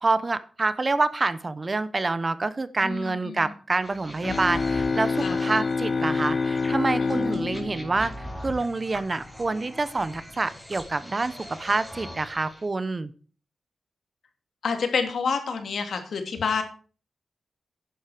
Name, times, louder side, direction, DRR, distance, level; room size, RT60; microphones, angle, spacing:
voice 1, 0.0-13.1, right 3 dB, 30° right, 15 dB, 0.7 m, -27 dB
voice 2, 2.8-3.5 5.2-5.4 7.0-7.7 14.6-16.6, left 5 dB, 70° left, 6 dB, 2.4 m, -29 dB
sound 1, 3.8-12.6, equal, ahead, 3.2 m, -42 dB
sound 2, 4.2-8.9, left 4 dB, 40° left, 0.5 m, -27 dB
11.0 x 10.0 x 4.9 m, 0.39 s
wide cardioid pair, 155°, 0 cm